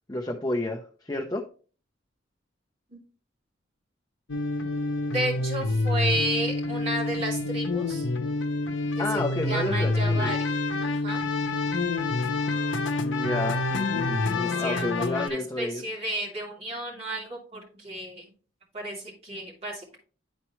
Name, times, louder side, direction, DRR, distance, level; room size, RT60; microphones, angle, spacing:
voice 1, 0.1-1.4 9.0-10.3 13.0-15.8, left 1 dB, 20° left, 2 dB, 0.7 m, -31 dB
sound 1, 4.3-15.3, left 3 dB, 70° left, 0.9 m, -27 dB
voice 2, 5.1-8.1 9.0-10.5 10.8-11.2 14.4-18.2 18.7-20.0, right 1 dB, 30° right, -4 dB, 2.7 m, -32 dB
11.0 x 4.4 x 3.1 m, 0.39 s
head